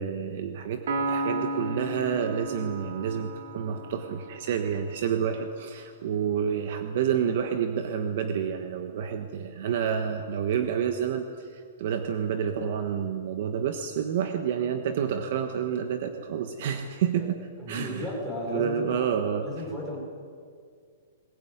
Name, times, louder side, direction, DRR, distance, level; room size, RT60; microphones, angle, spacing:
voice 1, 0.0-17.4 17.7-18.1 18.5-19.5, right 8 dB, 45° right, 7 dB, 1.3 m, -29 dB
Piano, 0.9-4.5, right 2 dB, 65° right, 3.2 m, -33 dB
voice 2, 17.6-19.1 19.4-20.0, left 1 dB, 5° right, -2 dB, 5.0 m, -34 dB
21.0 x 20.5 x 9.6 m, 2.2 s
hypercardioid pair, 180°, 0 cm